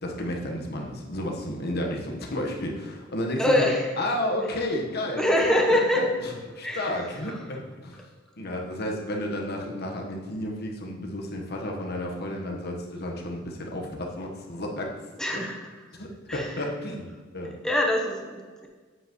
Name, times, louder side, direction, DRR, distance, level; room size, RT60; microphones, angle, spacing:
voice 1, 0.0-3.7 4.0-5.2 5.5-5.6 6.0-6.3 6.6-8.0 8.4-15.0 15.3-15.4 15.9-17.1 17.3-17.5, left 1 dB, 55° left, 0 dB, 1.2 m, -32 dB
voice 2, 3.4-3.9 5.2-6.1 6.5-7.0 7.3-7.4 15.2-15.7 16.3-16.7 17.6-18.7, left 1 dB, 5° left, 0 dB, 1.0 m, -24 dB
7.8 x 7.6 x 3.1 m, 1.4 s
head